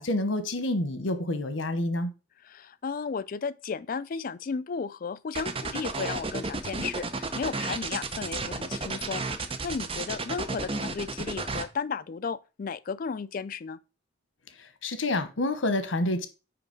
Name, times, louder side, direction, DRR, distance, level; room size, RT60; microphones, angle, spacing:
voice 1, 0.0-2.1 14.6-16.3, left 1 dB, 85° left, 1.0 m, -28 dB
voice 2, 2.4-13.8, left 5 dB, 45° left, 0.4 m, -34 dB
sound 1, 5.3-11.6, right 3 dB, 30° right, 0.7 m, -32 dB
5.9 x 4.9 x 5.1 m
head